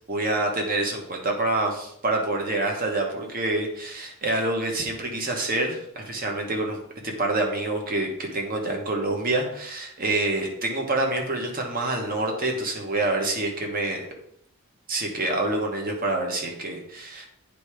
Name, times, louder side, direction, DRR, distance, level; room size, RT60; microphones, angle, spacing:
voice 1, 0.1-14.1 14.9-17.3, right 2 dB, 40° right, 1 dB, 1.3 m, -27 dB
9.2 x 3.4 x 4.9 m, 0.71 s
head